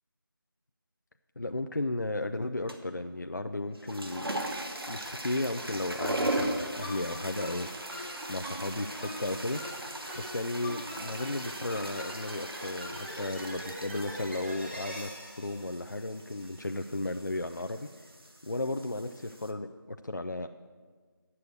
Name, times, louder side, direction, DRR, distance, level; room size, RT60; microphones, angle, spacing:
voice 1, 1.4-4.3 4.9-7.9 8.3-9.6 10.2-17.9 18.4-20.5, left 2 dB, 55° left, 7 dB, 0.5 m, -34 dB
sound 1, 2.7-3.0 3.7-19.5, right 1 dB, 90° right, 1.5 m, -39 dB
sound 2, 6.2-16.6, equal, 30° right, 1.9 m, -43 dB
9.5 x 6.9 x 7.9 m, 1.5 s
figure-of-eight pair, 180°, 12 cm